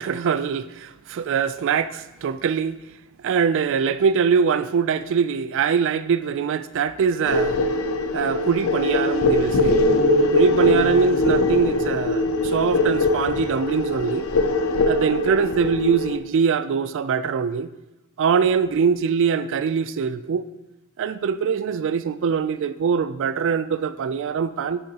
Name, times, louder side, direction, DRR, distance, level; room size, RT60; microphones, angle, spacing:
voice 1, 0.0-2.8 3.2-7.6 8.1-9.8 10.3-14.3 14.9-17.7 18.2-20.4 21.0-24.8, right 6 dB, 60° right, 14 dB, 0.3 m, -23 dB
sound 1, 7.3-16.2, left 2 dB, 70° left, 0.6 m, -21 dB
9.8 x 6.6 x 2.9 m, 1.0 s
head